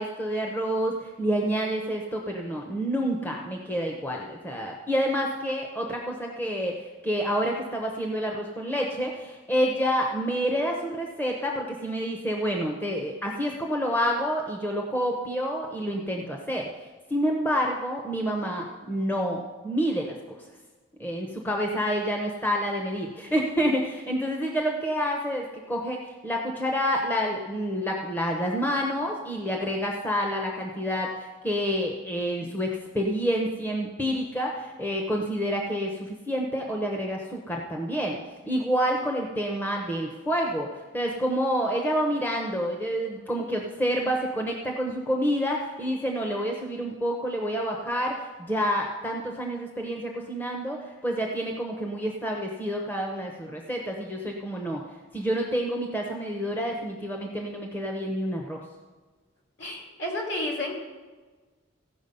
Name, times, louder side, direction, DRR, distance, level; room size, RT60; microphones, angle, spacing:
voice 1, 0.0-16.7 17.1-20.2 21.0-38.2 38.5-40.7 40.9-54.8 55.1-58.6, equal, 10° left, 0 dB, 0.8 m, -28 dB
voice 2, 59.6-60.7, left 1 dB, 60° left, -2 dB, 2.9 m, -31 dB
15.5 x 6.1 x 5.4 m, 1.4 s
head